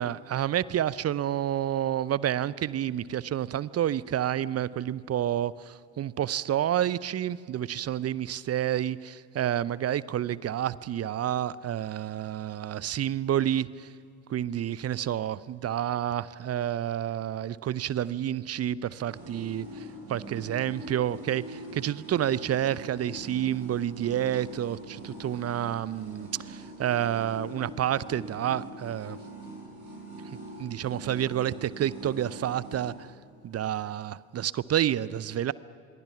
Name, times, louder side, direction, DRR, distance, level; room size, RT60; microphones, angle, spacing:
voice 1, 0.0-13.9 14.3-19.6 20.1-29.2 30.3-33.1 33.4-35.5, right 11 dB, 35° right, 20 dB, 0.7 m, -29 dB
sound 1, 18.9-32.9, right 1 dB, 85° right, 7.2 m, -43 dB
27.0 x 22.5 x 5.9 m, 2.4 s
figure-of-eight pair, 50°, 42 cm